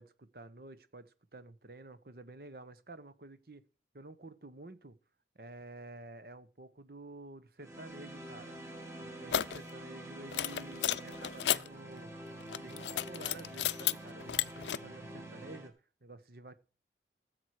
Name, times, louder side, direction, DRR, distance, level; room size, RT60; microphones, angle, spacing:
voice 1, 0.0-3.6 3.9-5.0 5.3-8.6 9.0-15.7 16.0-16.5, right 2 dB, 55° right, 1.1 m, -51 dB
sound 1, 7.6-15.7, right 1 dB, 15° right, 2.0 m, -47 dB
sound 2, 9.3-9.6 10.3-11.7 12.4-13.9 14.2-14.8, left 11 dB, 85° left, 0.5 m, -32 dB
14.5 x 7.9 x 4.8 m
head